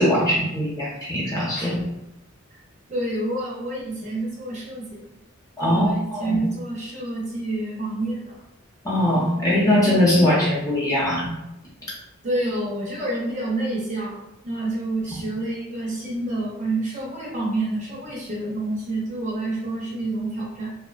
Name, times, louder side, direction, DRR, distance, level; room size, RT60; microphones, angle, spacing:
voice 1, 0.0-1.8 5.6-6.4 8.8-11.3, left 1 dB, 15° left, -7 dB, 0.6 m, -21 dB
voice 2, 2.9-5.0 5.6-8.3 12.2-20.8, right 2 dB, 35° right, -4 dB, 0.5 m, -28 dB
2.5 x 2.0 x 2.3 m, 0.88 s
head